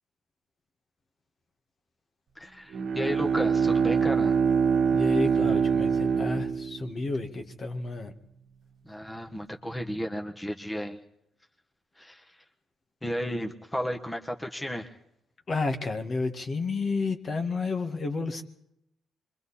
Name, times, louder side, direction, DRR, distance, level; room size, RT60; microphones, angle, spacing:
voice 1, 2.3-4.4 8.8-11.0 12.0-12.4 13.0-15.0, equal, 10° left, 2 dB, 1.5 m, -33 dB
Bowed string instrument, 2.7-7.3, right 6 dB, 65° right, 1.3 m, -25 dB
voice 2, 4.9-8.1 15.5-18.4, left 3 dB, 45° left, 5 dB, 1.9 m, -31 dB
26.0 x 23.0 x 4.3 m, 0.78 s
cardioid pair, 90°, 0 cm